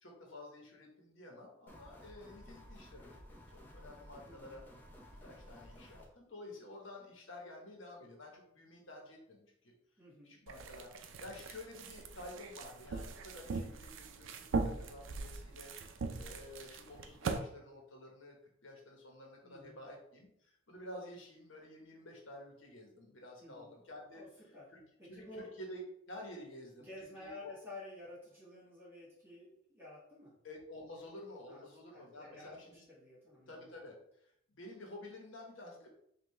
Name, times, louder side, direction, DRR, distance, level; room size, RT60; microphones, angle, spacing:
voice 1, 0.0-3.2 3.5-4.6 5.2-9.7 10.2-15.7 16.1-18.4 18.6-24.2 24.7-24.8 25.1-27.5 30.4-32.8 33.3-35.9, left 1 dB, 85° left, 0 dB, 1.2 m, -51 dB
sound 1, 1.7-6.1, equal, 10° left, 0.7 m, -55 dB
voice 2, 4.2-4.7 10.0-10.4 19.4-19.8 23.4-23.7 24.1-24.7 25.0-25.5 26.8-30.4 31.5-31.6 31.9-33.8, left 2 dB, 10° right, -7 dB, 1.7 m, -52 dB
sound 2, 10.5-17.4, right 4 dB, 75° right, 0.4 m, -40 dB
5.3 x 2.6 x 3.3 m, 0.72 s
head